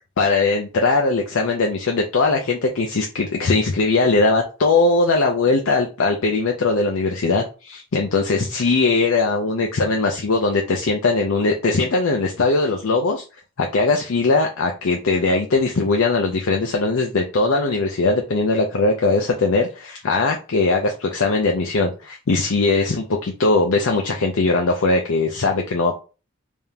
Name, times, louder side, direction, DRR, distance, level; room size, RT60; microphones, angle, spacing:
voice 1, 0.2-13.2 13.6-26.0, left 3 dB, 70° left, 1 dB, 0.6 m, -20 dB
3.6 x 3.5 x 2.7 m, 0.33 s
head